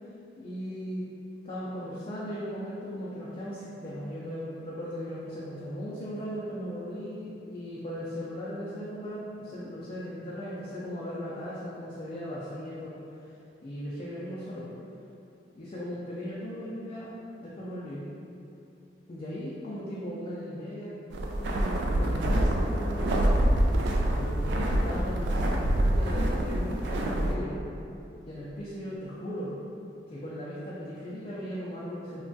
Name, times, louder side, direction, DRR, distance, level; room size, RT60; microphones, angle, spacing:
voice 1, 0.4-1.0 1.4-13.0 13.6-14.7 15.5-18.0 19.1-20.9 21.6-23.6 24.1-27.6 28.2-29.5 30.1-32.2, equal, 35° left, -8 dB, 0.3 m, -37 dB
sound 1, 21.1-27.3, right 1 dB, 80° right, 0.3 m, -26 dB
3.1 x 2.2 x 2.6 m, 2.7 s
head